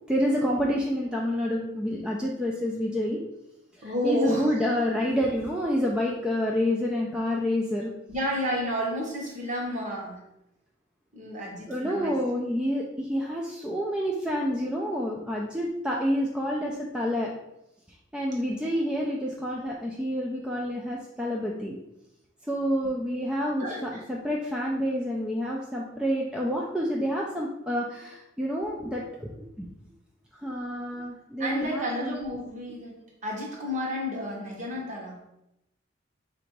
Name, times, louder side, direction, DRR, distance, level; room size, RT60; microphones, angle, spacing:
voice 1, 0.1-3.2 3.8-7.9 11.7-17.3 18.1-21.8 22.5-29.7 30.4-32.2, equal, 5° right, -3 dB, 0.3 m, -28 dB
voice 2, 3.8-4.5 8.1-10.2 11.1-12.2 18.5-19.0 23.6-23.8 31.4-33.0 33.2-35.2, equal, 40° right, -2 dB, 1.1 m, -31 dB
3.8 x 2.6 x 4.5 m, 0.88 s
head